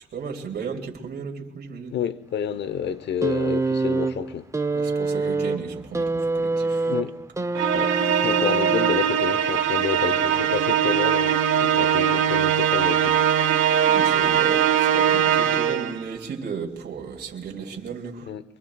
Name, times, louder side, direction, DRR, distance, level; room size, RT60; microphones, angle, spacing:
voice 1, 0.1-2.0 4.7-6.9 13.9-18.3, right 6 dB, 55° right, 2.7 m, -35 dB
voice 2, 1.9-4.5 6.8-7.1 7.7-13.2 18.3-18.4, left 8 dB, 60° left, 1.0 m, -29 dB
sound 1, 3.2-9.4 10.4-10.5, right 3 dB, 15° right, 0.6 m, -26 dB
Musical instrument, 7.6-16.0, right 9 dB, 80° right, 1.1 m, -21 dB
24.0 x 23.5 x 2.4 m
cardioid pair, 90°, 20 cm